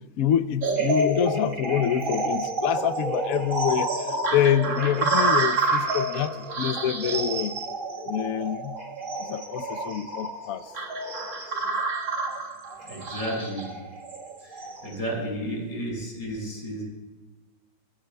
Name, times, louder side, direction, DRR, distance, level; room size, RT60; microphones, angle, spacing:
voice 1, 0.2-7.5 8.1-8.8 9.3-10.6, left 10 dB, 85° left, 12 dB, 0.7 m, -26 dB
sound 1, 0.6-14.9, right 2 dB, 40° right, 1.8 m, -28 dB
voice 2, 12.8-13.7 14.4-16.8, equal, 65° left, -3 dB, 6.7 m, -32 dB
23.5 x 17.0 x 2.2 m, 1.2 s
omnidirectional pair, 2.2 m